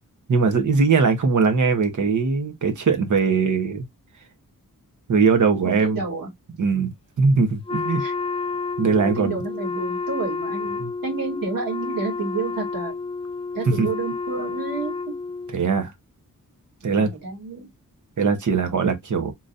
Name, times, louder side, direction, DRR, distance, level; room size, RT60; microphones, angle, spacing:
voice 1, 0.3-3.9 5.1-6.0 6.6-6.9 7.2-8.0 8.8-9.4 10.8-10.9 13.7-13.9 15.5-15.9 16.8-17.1 18.2-19.3, right 5 dB, 60° right, 1.1 m, -20 dB
voice 2, 5.6-6.3 8.0-8.1 9.0-12.9 13.5-15.0 16.8-17.7, right 4 dB, 75° right, 2.2 m, -30 dB
Wind instrument woodwind instrument, 7.7-15.6, left 4 dB, 15° left, 0.4 m, -30 dB
4.0 x 3.0 x 2.6 m
wide cardioid pair, 120°, 35 cm